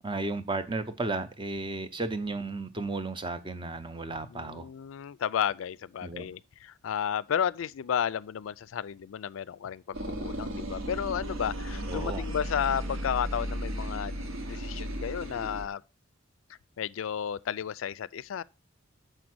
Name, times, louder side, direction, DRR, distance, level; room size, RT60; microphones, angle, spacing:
voice 1, 0.0-4.7 6.0-6.3 11.9-12.2, right 3 dB, 25° right, 0.6 m, -34 dB
voice 2, 4.3-14.2 14.5-15.8 16.8-18.4, left 8 dB, 70° left, 0.3 m, -32 dB
sound 1, 9.9-15.7, equal, 70° right, 1.1 m, -35 dB
6.5 x 5.1 x 6.0 m
head